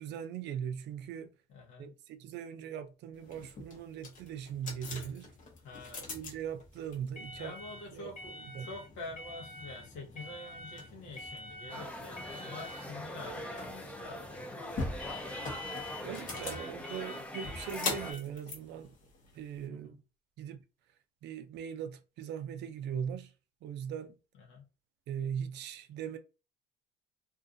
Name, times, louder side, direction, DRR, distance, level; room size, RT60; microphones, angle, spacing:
voice 1, 0.0-1.3 1.8-5.3 6.1-7.5 7.9-8.1 8.5-8.7 16.0-18.9 19.3-20.0 20.4-20.6 21.2-23.3 23.6-24.2 25.1-26.2, right 8 dB, 60° right, 0.4 m, -40 dB
voice 2, 1.5-1.9 5.6-6.0 7.4-14.9 19.7-20.0 24.3-24.6, left 2 dB, 75° left, 0.9 m, -47 dB
sound 1, 3.2-19.7, left 3 dB, 45° left, 0.9 m, -43 dB
sound 2, 11.7-18.1, left 1 dB, 5° left, 0.5 m, -43 dB
2.5 x 2.3 x 2.5 m
cardioid pair, 100°, 20 cm